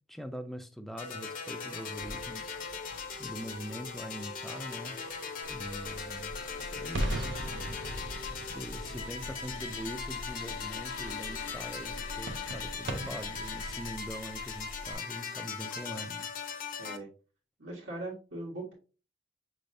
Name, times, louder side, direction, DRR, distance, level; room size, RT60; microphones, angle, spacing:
voice 1, 0.1-2.5 3.2-7.9 8.3-16.8, equal, ahead, 0.4 m, -43 dB
sound 1, 1.0-17.0, left 5 dB, 45° left, 0.8 m, -39 dB
sound 2, 1.9-13.8, right 1 dB, 65° right, 0.7 m, -41 dB
sound 3, 5.4-14.9, left 2 dB, 90° left, 0.7 m, -46 dB
voice 2, 17.6-18.7, right 2 dB, 85° right, 1.6 m, -40 dB
6.3 x 3.2 x 2.6 m
head